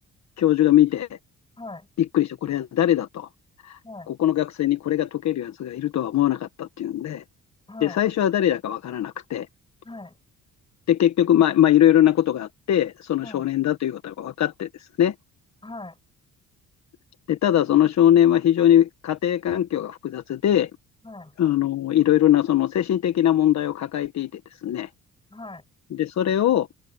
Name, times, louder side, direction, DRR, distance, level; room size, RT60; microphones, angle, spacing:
voice 1, 0.4-1.1 2.1-3.3 3.6-3.8 4.1-7.2 7.8-9.5 10.9-14.7 15.0-15.1 17.3-20.7 21.4-24.9 25.9-26.7, left 11 dB, 65° left, 1.4 m, -21 dB
voice 2, 1.6-1.9 3.8-4.1 7.7-8.0 9.8-10.2 13.2-13.5 15.6-16.0 21.0-21.3 25.3-25.6, left 2 dB, 15° left, 8.0 m, -39 dB
cardioid pair, 90°, 30 cm